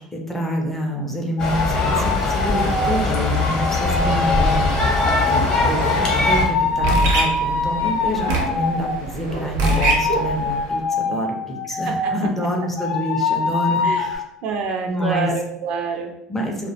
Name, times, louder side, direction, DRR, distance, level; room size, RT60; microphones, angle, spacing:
voice 1, 0.1-4.7 5.3-14.2 14.8-15.3 16.3-16.7, equal, 10° left, 0 dB, 0.4 m, -27 dB
sound 1, 1.4-9.0 9.6-12.3 12.8-14.2, left 4 dB, 75° left, 0.4 m, -24 dB
sound 2, 1.4-6.4, left 2 dB, 35° left, 0.8 m, -21 dB
sound 3, 5.8-10.7, right 2 dB, 85° right, 0.7 m, -25 dB
voice 2, 11.7-12.3 13.8-14.0 14.4-16.1, right 5 dB, 55° right, 3 dB, 0.4 m, -27 dB
2.2 x 2.0 x 2.8 m, 0.79 s
supercardioid pair, 125°, 2 cm